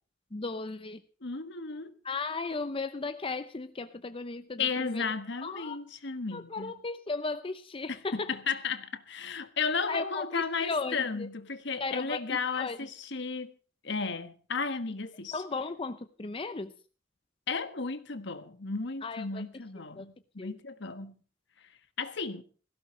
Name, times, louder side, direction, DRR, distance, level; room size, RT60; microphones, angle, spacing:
voice 1, 0.3-1.0 2.0-5.1 5.4-5.8 6.3-8.3 9.9-11.3 11.8-12.8 15.3-16.7 19.0-19.4 20.0-20.1 20.4-20.5, left 3 dB, 30° left, 0.7 m, -36 dB
voice 2, 1.2-1.9 4.6-6.7 7.9-13.5 13.8-15.4 17.5-21.1 21.6-21.7 22.0-22.4, left 5 dB, 65° left, 1.4 m, -34 dB
18.0 x 15.5 x 3.2 m
head